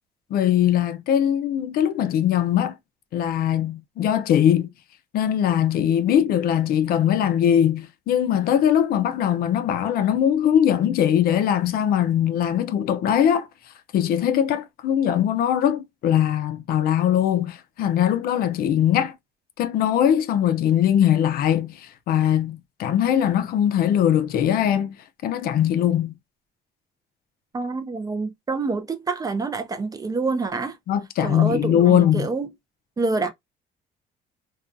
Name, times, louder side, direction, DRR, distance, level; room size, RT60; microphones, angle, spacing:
voice 1, 0.3-2.7 3.1-4.7 5.1-13.5 13.9-19.1 19.6-24.9 25.2-26.1 30.9-32.3, left 10 dB, 60° left, 0.4 m, -21 dB
voice 2, 27.5-30.8 31.2-32.5 33.0-33.3, right 3 dB, 20° right, 0.4 m, -27 dB
2.5 x 2.3 x 2.4 m
cardioid pair, 110°, 17 cm